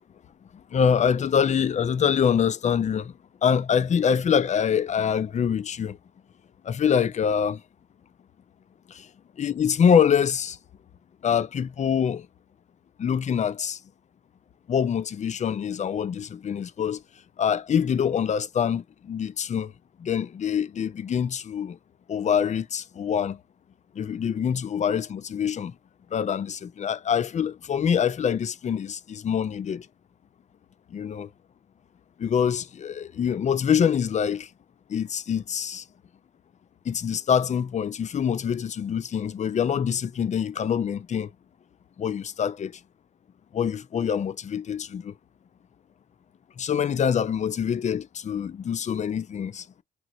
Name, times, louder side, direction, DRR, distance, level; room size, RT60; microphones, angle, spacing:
voice 1, 0.7-3.1 3.4-6.0 6.6-7.6 8.9-9.1 9.4-10.6 11.2-12.3 13.0-13.8 14.7-17.0 17.4-19.7 20.0-21.8 22.1-23.4 24.0-25.7 26.1-29.9 30.9-31.3 32.2-34.5 34.9-35.8 36.9-41.3 42.0-42.7 43.5-45.1 46.6-49.6, left 7 dB, 35° left, 0.4 m, -25 dB
3.0 x 2.9 x 2.4 m
cardioid pair, 90°, 20 cm